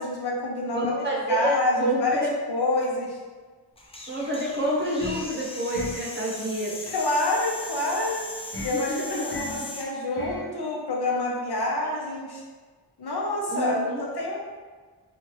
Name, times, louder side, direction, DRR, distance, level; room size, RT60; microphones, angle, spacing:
voice 1, 0.0-2.2 2.5-3.2 6.9-8.3 8.6-12.4 13.0-14.4, left 2 dB, 65° left, -3 dB, 0.8 m, -27 dB
voice 2, 0.7-2.3 4.1-6.8 8.7-9.6 13.5-14.0, right 1 dB, 25° right, -6 dB, 0.8 m, -28 dB
sound 1, 3.8-9.9, left 2 dB, 15° left, 0.4 m, -39 dB
sound 2, 5.0-5.4 5.7-6.1 8.5-8.8 9.3-9.6 10.2-10.5, left 2 dB, 30° left, 0.8 m, -36 dB
3.0 x 2.4 x 3.0 m, 1.4 s
wide cardioid pair, 55°, 42 cm